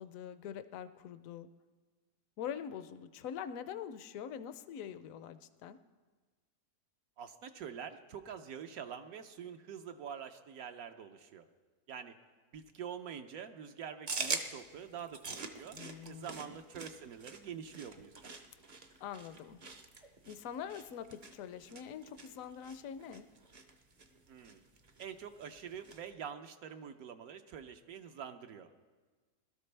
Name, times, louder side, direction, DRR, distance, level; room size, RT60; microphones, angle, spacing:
voice 1, 0.0-1.5 2.4-5.8 15.7-16.6 19.0-19.6 20.0-23.3, left 8 dB, 65° left, 12 dB, 0.9 m, -44 dB
voice 2, 7.2-11.5 11.9-12.1 12.5-15.8 16.1-18.3 24.3-24.6 25.0-28.7, right 8 dB, 70° right, 6 dB, 1.1 m, -46 dB
sound 1, 14.1-26.1, right 3 dB, 40° right, 0.5 m, -45 dB
21.0 x 12.5 x 3.3 m, 1.4 s
omnidirectional pair, 1.7 m